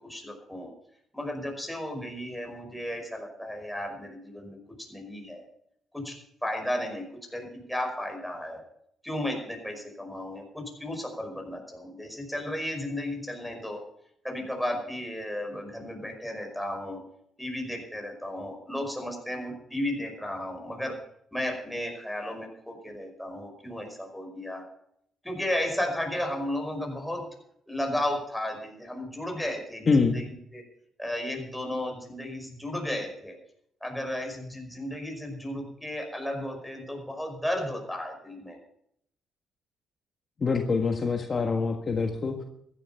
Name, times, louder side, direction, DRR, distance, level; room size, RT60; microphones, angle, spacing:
voice 1, 0.0-0.7 1.1-4.6 4.9-5.5 5.9-6.1 6.4-7.0 7.3-8.6 9.0-13.8 14.2-17.0 17.4-21.0 21.3-24.7 25.2-27.2 27.7-30.6 31.0-33.4 33.8-38.6, left 1 dB, ahead, 1 dB, 5.4 m, -34 dB
voice 2, 29.9-30.2 40.4-42.4, left 4 dB, 40° left, 3 dB, 1.5 m, -25 dB
15.0 x 11.5 x 5.7 m, 0.72 s
cardioid pair, 90°, 0 cm